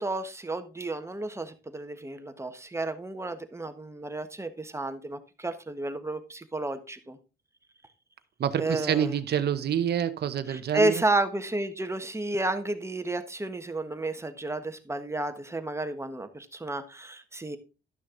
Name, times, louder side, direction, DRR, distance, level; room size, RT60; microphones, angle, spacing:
voice 1, 0.0-7.2 8.6-9.1 10.5-17.6, right 2 dB, 15° right, 1.3 m, -31 dB
voice 2, 8.4-11.0, right 9 dB, 55° right, 0.9 m, -27 dB
12.0 x 6.3 x 3.8 m
cardioid pair, 90°, 20 cm